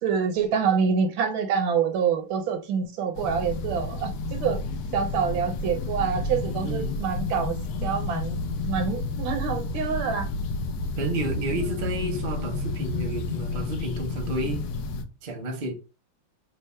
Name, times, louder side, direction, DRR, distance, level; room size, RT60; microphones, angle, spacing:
voice 1, 0.0-4.6 4.9-10.3, right 6 dB, 75° right, 1.5 m, -26 dB
sound 1, 3.1-15.0, left 3 dB, 75° left, 0.9 m, -31 dB
voice 2, 6.6-7.0 11.0-14.6 15.2-15.7, right 2 dB, 45° right, 0.7 m, -31 dB
3.4 x 2.1 x 4.3 m
omnidirectional pair, 2.2 m